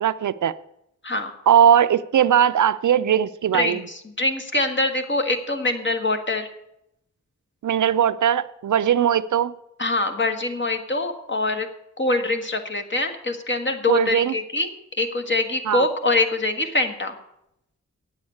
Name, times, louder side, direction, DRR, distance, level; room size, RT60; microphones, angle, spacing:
voice 1, 0.0-0.5 1.5-3.8 7.6-9.5 13.9-14.3 15.7-15.9, right 9 dB, 75° right, 14 dB, 0.5 m, -19 dB
voice 2, 3.5-6.5 9.8-11.7 12.0-14.7 15.0-17.1, left 2 dB, 40° left, 5 dB, 1.6 m, -24 dB
9.2 x 7.9 x 8.5 m, 0.80 s
wide cardioid pair, 80°, 30 cm